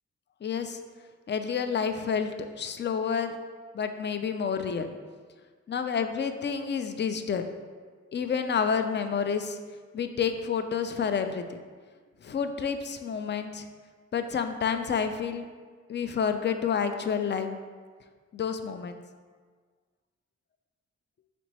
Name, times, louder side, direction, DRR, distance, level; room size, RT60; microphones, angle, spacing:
voice 1, 0.4-0.8 1.3-3.3 3.7-4.9 5.7-7.5 8.1-9.6 9.9-11.6 12.2-13.7 14.1-15.5 15.9-17.6 18.3-19.0, left 6 dB, 35° left, 8 dB, 0.4 m, -29 dB
4.3 x 2.9 x 4.1 m, 1.5 s
cardioid pair, 40°, 30 cm